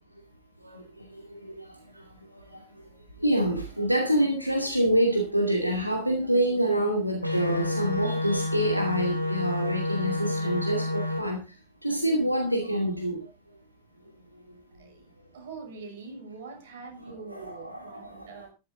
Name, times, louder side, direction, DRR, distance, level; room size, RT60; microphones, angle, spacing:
voice 1, 1.3-1.6 2.0-2.1 3.2-11.4 11.8-13.2 17.3-18.3, right 1 dB, 90° right, 2 dB, 2.4 m, -26 dB
sound 1, 7.2-11.2, left 1 dB, 90° left, 3.0 m, -29 dB
voice 2, 14.7-18.5, right 4 dB, 55° right, 4 dB, 6.4 m, -44 dB
13.5 x 12.5 x 3.8 m, 0.29 s
figure-of-eight pair, 90°, 0 cm